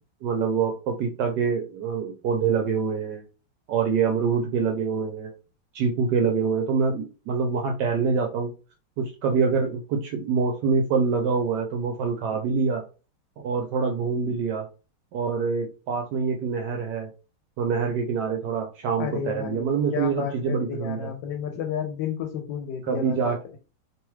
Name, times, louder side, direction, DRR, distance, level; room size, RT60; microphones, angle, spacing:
voice 1, 0.2-3.2 3.7-5.3 5.7-8.5 9.0-12.9 13.4-14.7 15.1-17.1 17.6-21.1 22.9-23.4, right 5 dB, 75° right, 2 dB, 1.1 m, -25 dB
voice 2, 19.0-23.6, left 8 dB, 80° left, 5 dB, 1.3 m, -32 dB
3.0 x 2.3 x 3.1 m, 0.33 s
omnidirectional pair, 2.0 m